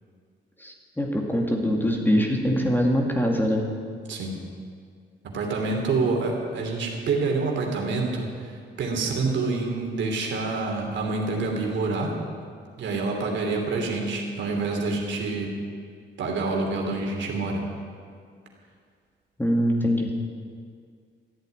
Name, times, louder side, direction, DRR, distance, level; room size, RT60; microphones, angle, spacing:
voice 1, 0.6-3.6 19.4-20.1, equal, 10° left, 1 dB, 2.2 m, -23 dB
voice 2, 5.2-12.2 12.8-15.5 16.2-17.6, right 3 dB, 70° right, 1 dB, 3.0 m, -27 dB
14.0 x 8.1 x 9.4 m, 2.1 s
cardioid pair, 90°, 20 cm